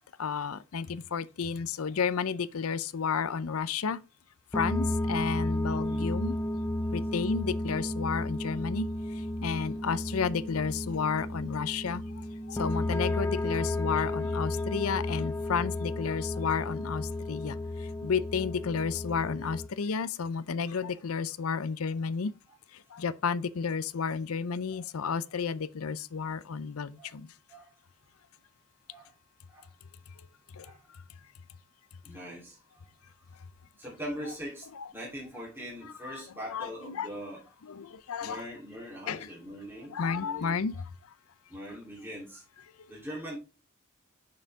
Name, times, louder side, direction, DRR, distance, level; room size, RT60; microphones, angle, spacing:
voice 1, 0.2-4.0 4.5-6.4 6.9-8.9 9.4-12.0 12.5-22.3 22.9-27.3 30.5-30.7 36.0-36.2 36.5-37.1 37.7-38.4 39.1-39.3 39.9-40.7, left 6 dB, 90° left, 0.6 m, -32 dB
sound 1, 4.5-19.7, left 1 dB, 10° left, 0.4 m, -33 dB
voice 2, 32.0-32.9 33.2-33.3 33.8-37.4 38.2-40.8 41.5-42.4 42.9-43.4, equal, 10° right, 3.2 m, -42 dB
6.6 x 6.3 x 3.5 m
head